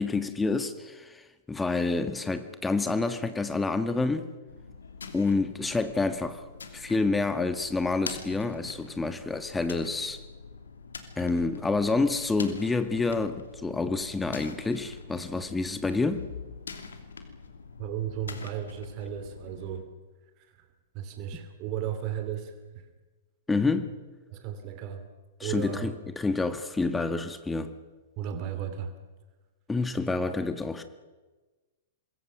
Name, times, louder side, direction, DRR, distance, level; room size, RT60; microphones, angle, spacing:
voice 1, 0.0-4.3 5.1-6.4 6.7-10.2 11.2-16.2 23.5-23.9 25.4-27.7 29.7-30.8, left 3 dB, 10° left, 9 dB, 1.6 m, -28 dB
sound 1, 4.5-19.8, left 5 dB, 70° left, 2.9 m, -44 dB
voice 2, 17.8-19.8 20.9-22.8 24.3-25.1 25.4-25.9 28.2-28.9, right 9 dB, 40° right, 8 dB, 2.7 m, -34 dB
26.0 x 22.0 x 6.4 m, 1.3 s
figure-of-eight pair, 105°, 0 cm